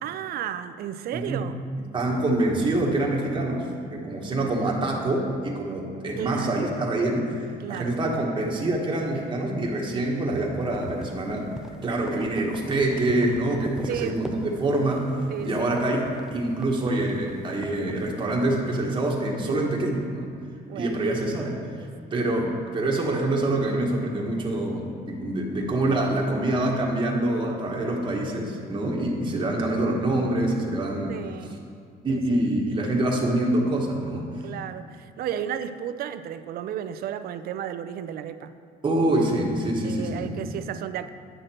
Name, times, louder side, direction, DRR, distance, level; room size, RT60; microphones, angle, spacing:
voice 1, 0.0-1.6 6.2-6.6 7.6-8.0 13.9-14.2 15.3-15.8 20.7-21.1 31.1-31.6 32.1-32.5 34.4-38.5 39.8-41.1, right 9 dB, 65° right, 11 dB, 0.5 m, -33 dB
voice 2, 1.1-1.5 1.9-11.5 11.8-15.0 15.4-16.0 16.3-20.3 20.7-21.6 22.1-31.1 32.0-34.3 38.8-40.3, right 1 dB, 30° right, -1 dB, 1.4 m, -25 dB
sound 1, 10.6-18.0, right 1 dB, 5° right, 0.5 m, -39 dB
8.9 x 6.5 x 4.4 m, 2.3 s
cardioid pair, 110°, 17 cm